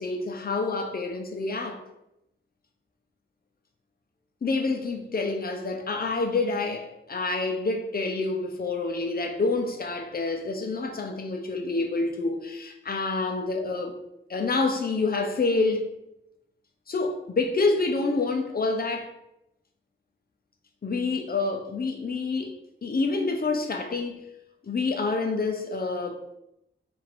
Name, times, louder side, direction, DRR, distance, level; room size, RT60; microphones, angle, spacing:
voice 1, 0.0-1.8 4.4-13.9 14.3-15.9 16.9-19.1 20.8-22.5 22.8-24.3 24.6-26.2, left 3 dB, 45° left, 0.6 m, -27 dB
3.7 x 2.5 x 4.4 m
wide cardioid pair, 110°, 21 cm